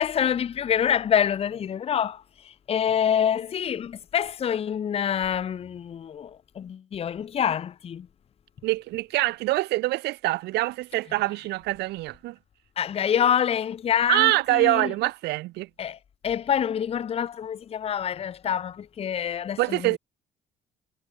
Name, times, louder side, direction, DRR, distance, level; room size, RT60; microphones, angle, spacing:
voice 1, 0.0-8.1 12.8-14.9 15.8-20.0, left 9 dB, 35° left, 0.7 m, -26 dB
voice 2, 8.6-12.4 14.1-15.7 19.6-20.0, right 19 dB, 80° right, 0.8 m, -25 dB
cardioid pair, 110°, 17 cm